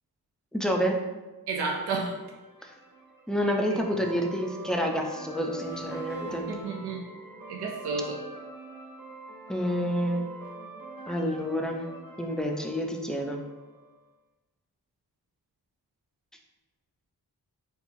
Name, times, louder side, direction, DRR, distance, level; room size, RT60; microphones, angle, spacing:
voice 1, 0.5-1.0 3.3-6.5 9.5-10.2 11.1-11.8 12.2-13.4, equal, ahead, 1 dB, 0.4 m, -28 dB
voice 2, 1.5-2.2 3.7-4.0 6.5-7.1 7.5-8.2, right 4 dB, 80° right, 0 dB, 0.5 m, -31 dB
sound 1, 2.2-13.9, right 3 dB, 60° right, 1.1 m, -44 dB
4.6 x 2.3 x 2.6 m, 1.2 s
wide cardioid pair, 70°, 39 cm